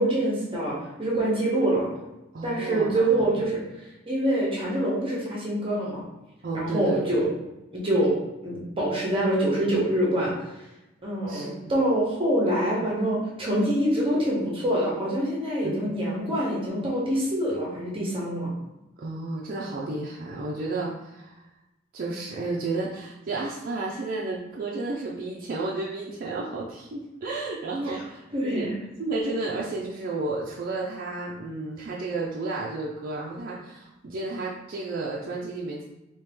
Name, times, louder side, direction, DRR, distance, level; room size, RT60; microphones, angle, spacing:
voice 1, 0.0-1.9 2.4-3.6 4.1-6.0 6.5-7.3 7.7-8.1 8.4-10.3 11.0-18.5 28.3-28.8, right 1 dB, 30° right, -5 dB, 1.1 m, -25 dB
voice 2, 2.3-3.4 6.4-7.2 11.3-11.5 15.6-16.0 19.0-21.4 21.9-28.7 29.0-35.8, right 2 dB, 50° right, -4 dB, 0.5 m, -32 dB
3.0 x 2.9 x 3.5 m, 0.96 s
head